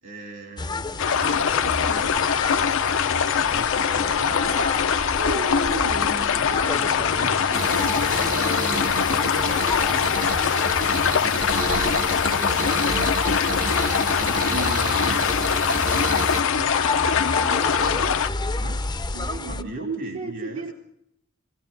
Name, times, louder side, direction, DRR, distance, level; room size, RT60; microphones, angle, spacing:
voice 1, 0.0-5.1 5.6-13.6 14.1-18.2 18.5-18.8 19.5-20.6, right 1 dB, 60° right, 2.8 m, -40 dB
sound 1, 0.6-19.6, left 3 dB, 20° left, 0.6 m, -31 dB
sound 2, 1.0-18.3, left 7 dB, 65° left, 0.6 m, -23 dB
voice 2, 5.2-6.7 19.1-20.7, right 3 dB, 80° right, 3.0 m, -33 dB
sound 3, 7.5-16.4, right 2 dB, 40° right, 0.9 m, -30 dB
18.5 x 17.5 x 3.8 m
head